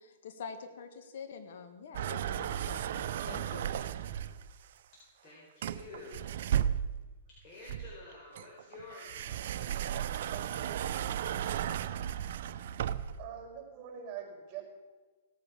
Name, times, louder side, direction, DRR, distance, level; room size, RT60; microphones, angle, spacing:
voice 1, 0.0-4.0, left 6 dB, 65° left, 8 dB, 1.9 m, -46 dB
sound 1, 1.9-4.5 5.6-7.1 7.7-13.2, right 10 dB, 65° right, 0.7 m, -35 dB
voice 2, 4.9-6.3 7.4-9.7, left 3 dB, 35° left, -5 dB, 4.6 m, -51 dB
voice 3, 13.2-14.6, right 9 dB, 35° right, 1 dB, 5.1 m, -43 dB
17.5 x 8.6 x 6.5 m, 1.3 s
hypercardioid pair, 130°, 0 cm